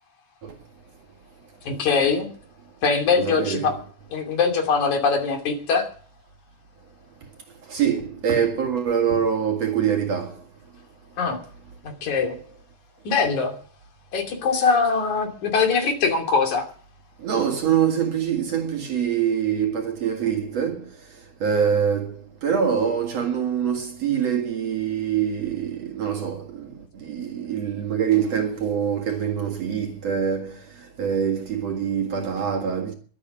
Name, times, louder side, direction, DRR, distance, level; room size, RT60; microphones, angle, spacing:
voice 1, 1.6-2.3 2.8-3.7 4.1-5.9 11.2-11.4 11.8-12.4 13.0-13.5 14.1-16.6, left 5 dB, 70° left, 4.3 m, -22 dB
voice 2, 3.2-3.8 7.7-10.4 17.2-20.9 21.4-22.2 22.4-26.7 27.0-30.6 31.0-32.9, right 8 dB, 55° right, 2.9 m, -24 dB
22.5 x 8.5 x 6.0 m
omnidirectional pair, 3.6 m